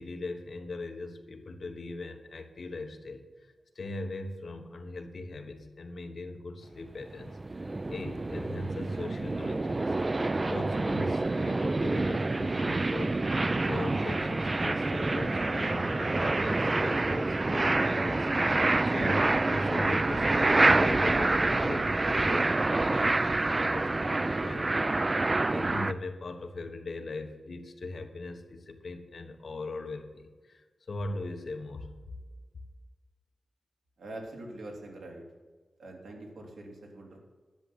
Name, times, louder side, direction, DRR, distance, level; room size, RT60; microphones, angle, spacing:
voice 1, 0.0-10.2 10.5-13.1 13.7-18.6 18.8-32.2, left 2 dB, 50° left, 5 dB, 1.3 m, -40 dB
sound 1, 7.0-25.9, right 2 dB, 25° right, 0.4 m, -27 dB
voice 2, 34.0-35.2 35.8-37.2, right 1 dB, 85° right, 0 dB, 3.0 m, -44 dB
11.0 x 7.5 x 8.6 m, 1.4 s
wide cardioid pair, 150°, 0 cm